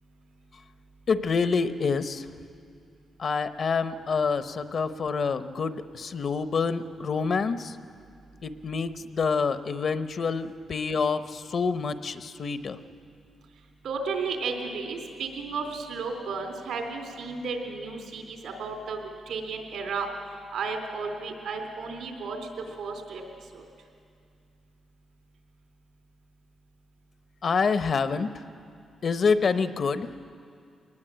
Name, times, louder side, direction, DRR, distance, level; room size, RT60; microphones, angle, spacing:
voice 1, 1.1-2.3 3.2-7.8 8.4-12.8 27.4-28.3 29.0-30.1, left 5 dB, 45° left, 11 dB, 0.8 m, -27 dB
voice 2, 13.8-19.0 19.3-20.1 20.5-22.5 22.8-23.2 23.5-23.6, right 4 dB, 85° right, 3 dB, 3.5 m, -33 dB
22.0 x 19.5 x 8.9 m, 2.3 s
wide cardioid pair, 160°, 0 cm